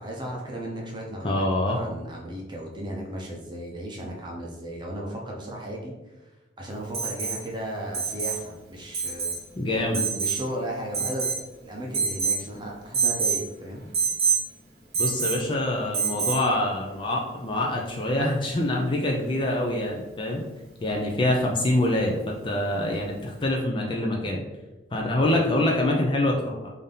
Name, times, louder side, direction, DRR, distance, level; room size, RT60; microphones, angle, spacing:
voice 1, 0.0-5.9 6.6-9.3 9.9-11.3 11.6-13.9 25.2-25.4, right 1 dB, 25° right, -2 dB, 0.6 m, -35 dB
voice 2, 1.2-1.8 9.6-10.0 15.0-20.4 20.8-24.4 24.9-26.7, left 1 dB, 25° left, -1 dB, 0.4 m, -25 dB
Alarm, 6.9-7.4 7.9-8.4 8.9-9.4 9.9-10.4 10.9-11.5 11.9-12.4 12.9-13.4 13.9-14.4 14.9-15.4 15.9-16.4 18.2-18.3, right 5 dB, 55° right, 0.9 m, -26 dB
3.6 x 2.7 x 3.7 m, 1.1 s
head